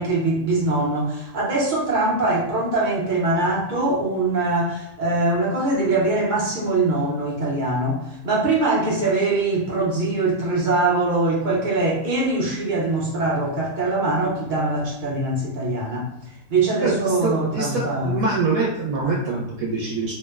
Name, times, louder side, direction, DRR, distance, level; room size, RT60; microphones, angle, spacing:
voice 1, 0.0-16.1 16.5-18.2 19.0-19.1, right 2 dB, 45° right, -5 dB, 0.7 m, -22 dB
voice 2, 16.8-20.1, right 3 dB, 85° right, -4 dB, 1.0 m, -24 dB
2.8 x 2.0 x 2.2 m, 0.87 s
omnidirectional pair, 1.5 m